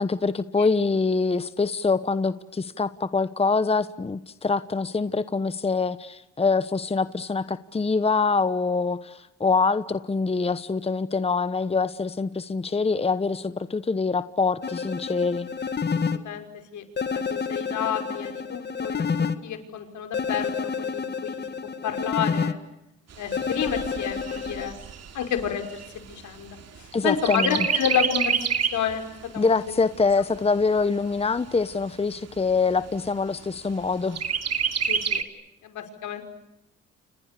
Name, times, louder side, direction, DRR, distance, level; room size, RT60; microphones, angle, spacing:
voice 1, 0.0-15.5 26.9-27.7 29.4-34.2, left 4 dB, 20° left, 14 dB, 1.1 m, -25 dB
sound 1, 14.6-16.2 17.0-19.3 20.1-22.5 23.3-24.7, left 5 dB, 35° left, 2.1 m, -29 dB
voice 2, 17.1-21.4 21.8-22.6 23.2-24.8 25.1-28.4 28.7-29.0 29.3-29.8 34.9-35.2 35.6-36.2, left 8 dB, 75° left, 7 dB, 5.4 m, -30 dB
Chirp tweet, 23.1-26.9 27.2-28.9 29.4-29.5 29.8-30.8 31.4-31.5 31.8-31.9 32.4-32.9 34.2-35.2, right 7 dB, 55° right, 2.9 m, -28 dB
30.0 x 29.0 x 6.9 m, 0.90 s
cardioid pair, 90°, 30 cm